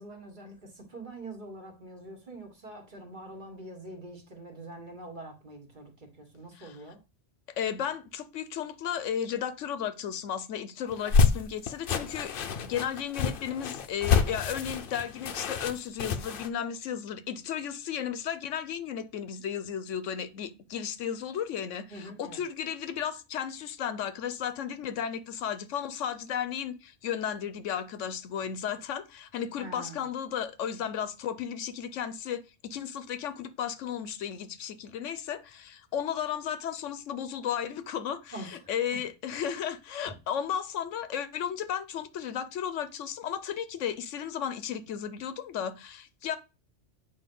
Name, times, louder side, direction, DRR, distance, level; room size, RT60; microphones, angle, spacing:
voice 1, 0.0-7.0 21.9-22.4 29.6-30.0 38.3-38.6 38.9-39.0, right 2 dB, 40° right, 1.5 m, -44 dB
voice 2, 7.6-12.3 12.6-38.4 38.7-46.4, left 8 dB, 80° left, 1.0 m, -34 dB
sound 1, 10.9-16.5, left 5 dB, 55° left, 0.7 m, -27 dB
7.8 x 2.8 x 5.3 m
omnidirectional pair, 1.3 m